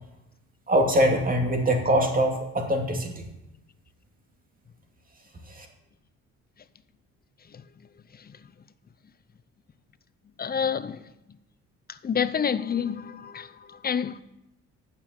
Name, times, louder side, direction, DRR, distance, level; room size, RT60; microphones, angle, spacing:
voice 1, 0.7-3.3 5.5-5.7, equal, 30° right, 2.4 m, -23 dB
voice 2, 10.4-11.0 12.0-14.2, left 7 dB, 30° left, 0.6 m, -28 dB
9.1 x 6.8 x 8.1 m
cardioid pair, 90°, 30 cm